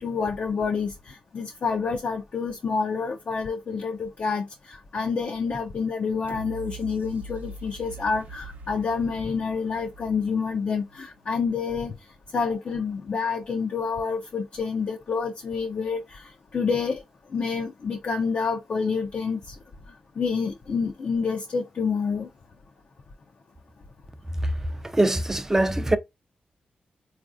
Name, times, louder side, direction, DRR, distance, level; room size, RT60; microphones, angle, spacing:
voice 1, 0.0-12.0 12.3-17.0 17.3-19.6 20.2-22.3, left 5 dB, 55° left, 0.5 m, -28 dB
sound 1, 6.3-11.2 11.6-11.7, right 3 dB, 80° right, 0.6 m, -43 dB
voice 2, 24.8-26.0, right 1 dB, 15° right, 0.4 m, -22 dB
3.9 x 2.4 x 2.5 m
cardioid pair, 95°, 3 cm